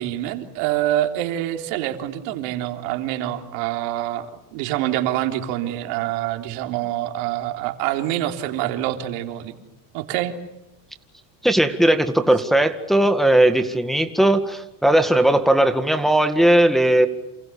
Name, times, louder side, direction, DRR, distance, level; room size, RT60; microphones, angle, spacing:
voice 1, 0.0-9.6 9.9-10.3, right 13 dB, 75° right, 5 dB, 3.6 m, -26 dB
voice 2, 11.4-17.1, right 1 dB, ahead, 7 dB, 2.0 m, -18 dB
29.0 x 28.5 x 7.0 m, 0.89 s
supercardioid pair, 125°, 46 cm